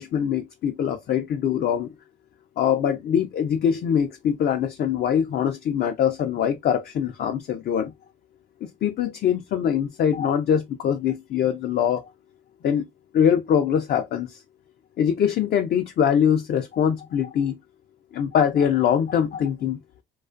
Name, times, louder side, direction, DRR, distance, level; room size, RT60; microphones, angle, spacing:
voice 1, 0.0-1.9 2.6-7.9 8.8-12.0 12.6-12.8 13.1-14.4 15.0-17.6 18.1-19.8, left 8 dB, 55° left, 0.4 m, -23 dB
2.4 x 2.3 x 2.3 m
cardioid pair, 90°, 20 cm